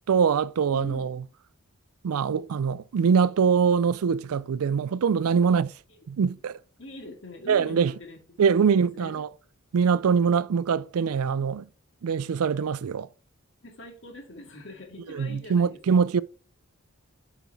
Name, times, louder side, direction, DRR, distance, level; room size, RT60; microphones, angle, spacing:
voice 1, 0.1-1.2 2.0-5.7 6.1-6.6 7.5-7.9 8.4-9.3 9.7-11.7 12.0-13.1 15.1-16.2, right 6 dB, 80° right, 0.4 m, -23 dB
voice 2, 0.7-1.1 5.5-5.6 5.9-6.0 6.8-8.2 8.7-9.3 13.6-15.8, left 1 dB, 55° left, 2.1 m, -43 dB
7.0 x 5.7 x 4.6 m
head